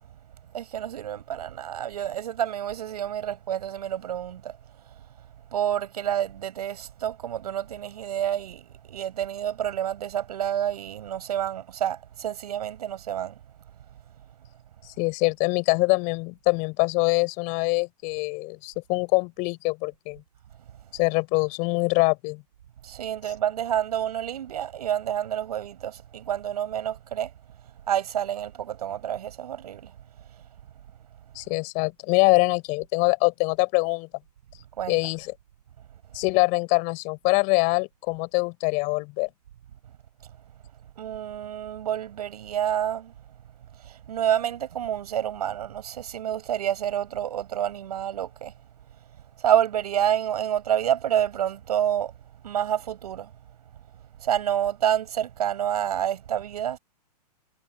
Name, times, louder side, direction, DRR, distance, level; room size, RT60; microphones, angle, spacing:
voice 1, 0.5-4.6 5.5-13.4 22.8-27.3 27.9-29.9 34.8-35.0 41.0-43.1 43.8-48.5 49.4-52.1 52.4-53.3 54.2-56.8, right 10 dB, 70° right, 6.9 m, -28 dB
voice 2, 15.0-20.2 20.9-22.4 31.4-34.1 34.9-35.3 36.1-39.3, left 29 dB, 35° left, 7.4 m, -24 dB
hypercardioid pair, 130°, 21 cm